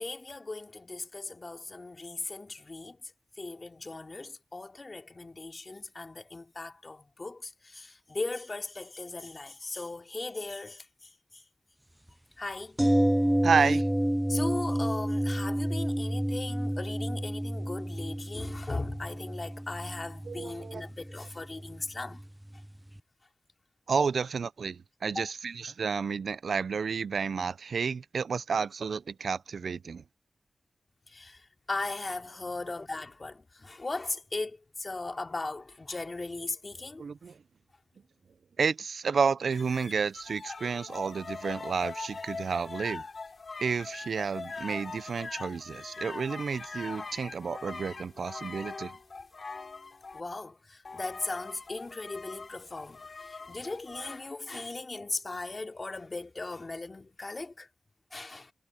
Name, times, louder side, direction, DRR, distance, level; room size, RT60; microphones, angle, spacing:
voice 1, 0.0-3.1 3.4-11.4 12.4-12.8 14.3-22.2 25.1-25.3 31.1-37.0 50.1-57.7 58.1-58.5, left 3 dB, 45° left, 2.6 m, -38 dB
sound 1, 12.8-22.7 23.0-23.1, right 1 dB, 10° right, 0.3 m, -30 dB
voice 2, 13.4-13.9 20.3-20.8 23.9-30.0 37.0-37.3 38.6-43.0 43.6-48.9, right 5 dB, 90° right, 0.4 m, -31 dB
sound 2, 39.5-50.2 50.8-54.2, left 4 dB, 65° left, 3.0 m, -42 dB
cardioid pair, 60°, 0 cm